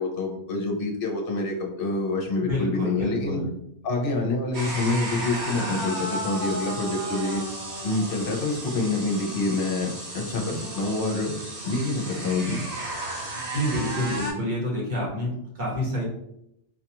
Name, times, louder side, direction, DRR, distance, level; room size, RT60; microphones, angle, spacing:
voice 1, 0.0-3.4 3.8-7.4 7.8-11.3 11.6-12.6, left 3 dB, 55° left, 1 dB, 0.9 m, -27 dB
voice 2, 2.4-3.5 13.5-16.0, equal, 40° right, -5 dB, 1.3 m, -28 dB
sound 1, 4.5-14.3, right 1 dB, 70° right, 1.5 m, -34 dB
4.0 x 2.4 x 2.9 m, 0.78 s
omnidirectional pair, 1.2 m